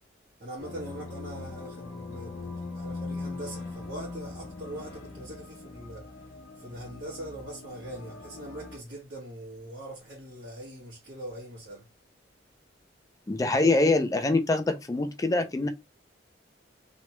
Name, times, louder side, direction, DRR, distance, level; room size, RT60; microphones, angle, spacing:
voice 1, 0.4-6.1 6.5-11.8, right 1 dB, 60° right, 1.2 m, -42 dB
sound 1, 0.6-8.8, left 3 dB, 80° left, 0.7 m, -41 dB
voice 2, 13.3-15.7, left 2 dB, 20° left, 0.3 m, -24 dB
3.1 x 2.1 x 2.9 m
head